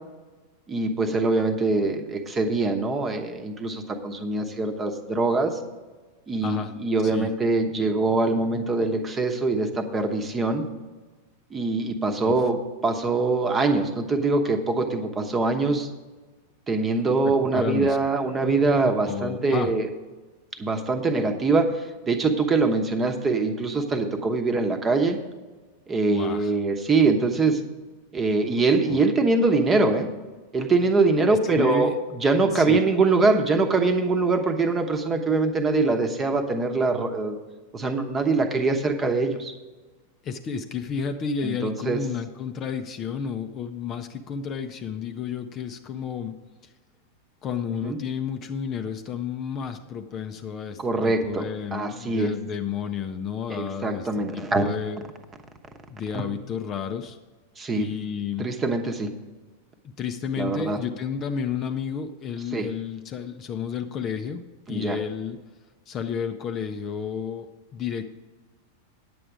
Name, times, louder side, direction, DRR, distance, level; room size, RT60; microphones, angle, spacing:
voice 1, 0.7-5.6 6.3-10.6 11.5-15.9 16.7-19.9 20.6-25.2 25.9-27.6 28.1-30.1 30.5-37.4 37.7-39.5 41.4-42.0 47.8-48.0 50.8-52.3 53.5-54.6 56.1-56.3 57.6-57.9 58.4-59.1 60.4-60.8 62.5-62.7 64.7-65.0, right 3 dB, 20° right, 6 dB, 1.1 m, -23 dB
voice 2, 6.4-6.7 7.0-7.3 12.2-12.5 17.0-18.0 19.0-19.7 26.1-26.5 28.9-29.0 31.6-32.0 32.5-32.8 40.2-46.3 46.6-46.7 47.4-54.1 54.3-55.0 55.9-57.2 57.7-58.5 60.0-64.4 64.7-65.4 65.9-68.0, left 7 dB, 30° left, 7 dB, 0.6 m, -31 dB
9.9 x 7.8 x 4.9 m, 1.3 s
figure-of-eight pair, 90°, 0 cm